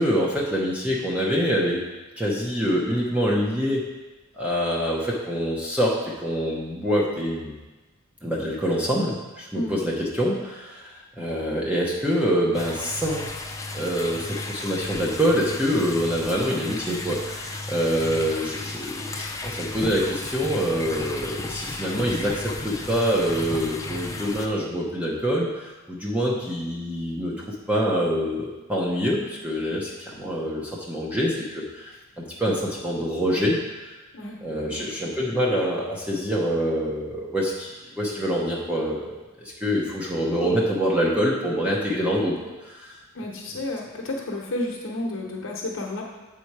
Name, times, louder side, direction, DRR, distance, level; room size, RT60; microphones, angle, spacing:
voice 1, 0.0-1.8 2.2-3.8 4.4-7.6 8.2-13.2 13.7-33.9 34.4-42.3 42.6-43.0, equal, 5° right, -4 dB, 0.8 m, -25 dB
sound 1, 12.5-24.5, left 2 dB, 15° left, 0.4 m, -34 dB
voice 2, 34.1-34.9 43.1-46.0, left 1 dB, 65° left, -1 dB, 1.0 m, -31 dB
7.7 x 4.3 x 4.7 m, 1.2 s
head